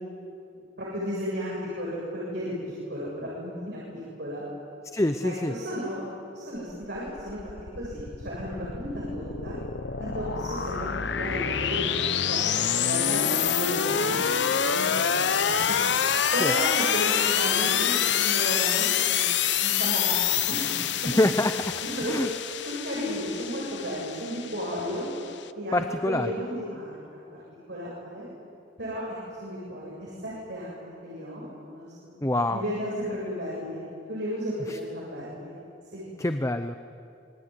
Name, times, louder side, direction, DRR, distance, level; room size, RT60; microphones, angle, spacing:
voice 1, 0.5-4.4 5.2-6.0 6.3-7.4 7.8-9.6 10.0-15.1 15.4-16.0 16.3-20.6 21.0-21.1 21.7-25.1 25.5-27.2 27.7-28.3 28.8-29.0 29.4-32.2 32.5-33.8 34.1-35.6 35.9-36.1, equal, 65° right, -6 dB, 7.5 m, -34 dB
voice 2, 4.9-5.5 16.4-16.5 21.2-21.5 22.1-22.3 25.7-26.3 32.2-32.6 36.2-36.8, left 1 dB, 15° left, 8 dB, 0.7 m, -25 dB
sound 1, 6.7-25.4, left 8 dB, 70° left, 0.9 m, -27 dB
27.0 x 21.0 x 9.6 m, 2.5 s
head